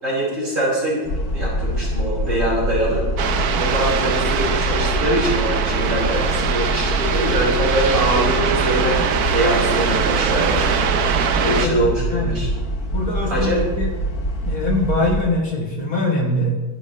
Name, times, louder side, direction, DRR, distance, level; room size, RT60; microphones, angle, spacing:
voice 1, 0.0-1.1 1.3-3.1 3.5-9.0 9.3-10.7 11.4-12.5 13.3-13.6, right 1 dB, 35° right, -5 dB, 6.4 m, -23 dB
sound 1, 1.0-15.2, equal, 45° left, 1.7 m, -25 dB
sound 2, 3.2-11.7, right 7 dB, 55° right, 1.2 m, -22 dB
voice 2, 11.4-12.3 12.9-13.9 14.4-16.6, left 2 dB, 65° left, -1 dB, 4.4 m, -23 dB
25.0 x 11.5 x 3.3 m, 1.3 s
omnidirectional pair, 2.4 m